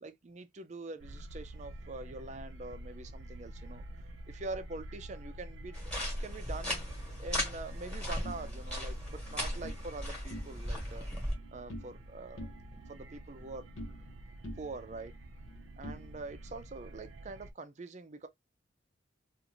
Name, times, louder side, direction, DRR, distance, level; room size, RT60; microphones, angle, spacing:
voice 1, 0.0-3.8 4.3-5.9 6.2-6.8 7.2-11.1 11.5-12.5 12.7-13.7 14.6-15.1 15.8-18.3, right 3 dB, 35° right, 0.4 m, -44 dB
sound 1, 1.0-17.5, right 1 dB, 80° right, 0.6 m, -48 dB
sound 2, 5.7-11.3, left 1 dB, 5° left, 1.1 m, -37 dB
sound 3, 8.2-9.8 10.2-10.9 11.1-12.1 12.4-14.2 14.4-16.5, equal, 90° left, 0.6 m, -47 dB
2.5 x 2.5 x 2.9 m
head